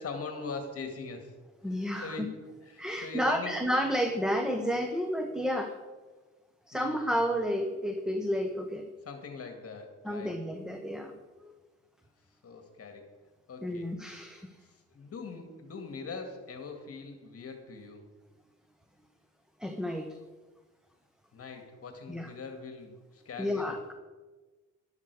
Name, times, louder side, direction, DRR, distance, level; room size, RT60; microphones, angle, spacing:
voice 1, 0.0-1.3 1.7-2.4 2.6-3.6 6.7-7.3 9.0-10.3 12.4-13.1 13.5-13.9 14.6-18.0 21.3-23.8, left 4 dB, 50° left, 4 dB, 2.0 m, -42 dB
voice 2, 1.6-2.2 2.8-5.7 6.7-8.9 10.0-11.1 11.4-11.5 13.6-14.5 19.6-20.2 22.1-22.3 23.4-23.9, equal, ahead, 5 dB, 1.2 m, -31 dB
12.5 x 12.0 x 4.7 m, 1.3 s
cardioid pair, 90°, 30 cm